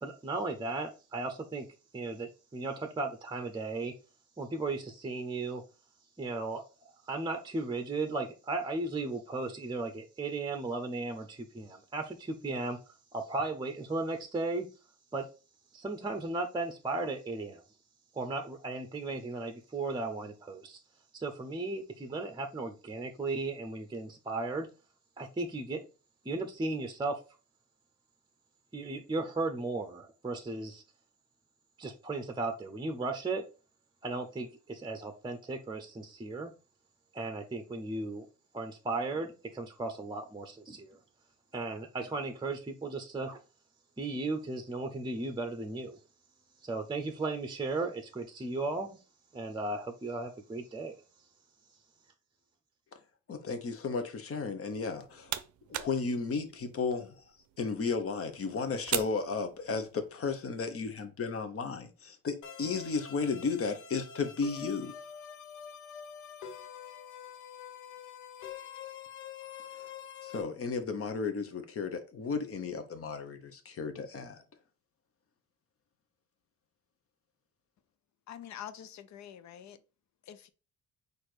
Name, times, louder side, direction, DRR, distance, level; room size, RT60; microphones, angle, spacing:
voice 1, 0.0-1.7 1.9-3.9 4.4-5.6 6.2-12.8 13.1-14.7 15.1-15.3 15.7-17.6 18.1-20.8 21.1-24.7 25.2-25.8 26.2-27.2 28.7-30.8 31.8-33.4 34.0-36.5 37.1-38.3 38.5-41.0 41.5-43.4 44.0-46.0 46.6-49.0 49.3-51.0, right 3 dB, 15° right, 0.7 m, -36 dB
voice 2, 53.3-55.4 55.7-57.2 57.6-64.9 70.2-74.4, left 4 dB, 50° left, 0.9 m, -34 dB
sound 1, 54.8-60.1, right 12 dB, 70° right, 0.5 m, -41 dB
sound 2, 62.4-70.4, left 8 dB, 85° left, 0.9 m, -46 dB
voice 3, 78.3-79.8 80.3-80.5, left 10 dB, 65° left, 0.6 m, -46 dB
4.3 x 2.6 x 4.7 m
cardioid pair, 90°, 30 cm